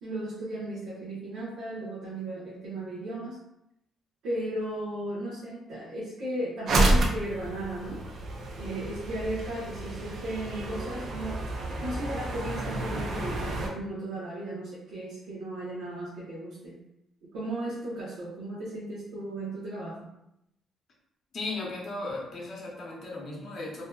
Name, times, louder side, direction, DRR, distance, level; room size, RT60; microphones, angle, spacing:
voice 1, 0.0-3.4 4.2-8.0 8.6-11.4 11.8-16.8 17.3-20.1, right 1 dB, 90° right, -8 dB, 0.7 m, -35 dB
sound 1, 6.7-13.7, right 2 dB, 65° right, 0.4 m, -30 dB
voice 2, 21.3-23.9, left 2 dB, 50° left, -3 dB, 0.8 m, -36 dB
2.6 x 2.3 x 2.2 m, 0.82 s
cardioid pair, 90°, 0 cm